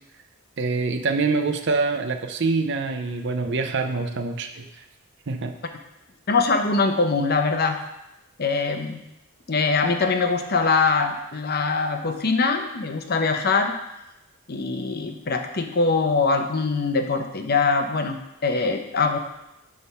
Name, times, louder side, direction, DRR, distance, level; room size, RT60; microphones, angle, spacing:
voice 1, 0.6-4.7 5.3-5.5, right 3 dB, 55° right, 6 dB, 0.6 m, -25 dB
voice 2, 6.3-7.8 8.4-9.0 9.5-13.7 14.5-19.2, left 4 dB, 45° left, 6 dB, 0.8 m, -23 dB
10.5 x 3.6 x 5.5 m, 0.90 s
head